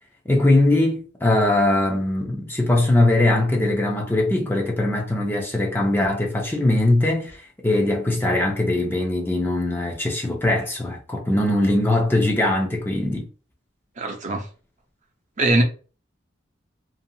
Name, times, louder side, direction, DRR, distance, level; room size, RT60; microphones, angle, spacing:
voice 1, 0.3-13.3, left 1 dB, 10° left, 0.5 m, -21 dB
voice 2, 14.0-14.5 15.4-15.6, right 2 dB, 40° right, 0.6 m, -21 dB
2.6 x 2.3 x 2.6 m
head